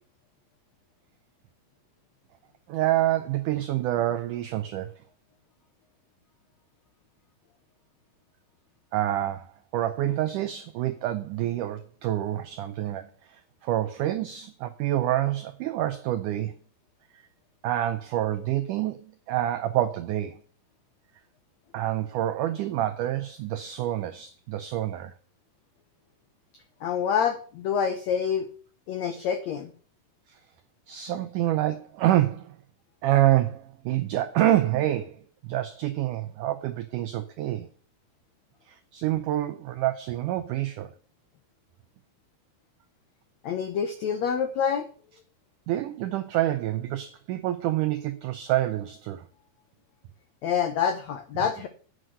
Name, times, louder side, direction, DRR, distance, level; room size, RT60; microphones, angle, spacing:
voice 1, 2.7-5.0 8.9-16.6 17.6-20.4 21.7-25.1 30.3-30.4 30.9-32.6 33.0-37.7 38.7-40.9 45.7-49.2, right 13 dB, 85° right, 1.8 m, -27 dB
voice 2, 26.8-28.5 28.9-29.7 43.4-44.8 50.4-51.7, left 7 dB, 90° left, 1.5 m, -27 dB
9.6 x 6.4 x 7.5 m
omnidirectional pair, 4.5 m